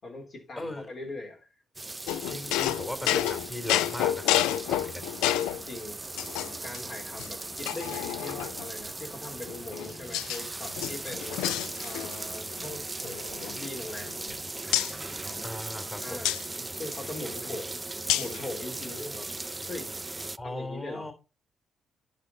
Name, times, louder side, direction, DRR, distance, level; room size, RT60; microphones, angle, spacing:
voice 1, 0.0-1.5 5.6-6.0 6.6-11.4 11.8-14.4 16.0-17.8 18.1-19.3 19.7-19.9 20.4-21.1, left 2 dB, 55° left, 3.6 m, -41 dB
voice 2, 0.6-0.9 2.3-5.1 15.4-16.3 20.4-21.1, left 1 dB, 25° left, 3.2 m, -38 dB
sound 1, 1.8-20.4, right 2 dB, 25° right, 0.3 m, -38 dB
sound 2, 2.1-5.6 6.2-6.8 7.2-7.3 7.7-8.7 9.5-10.4 10.7-12.3 12.5-12.7 13.1-14.3 14.7-14.9 16.2-16.4 18.1-18.4, left 13 dB, 80° left, 0.3 m, -29 dB
10.5 x 5.1 x 4.1 m
hypercardioid pair, 50°, 0 cm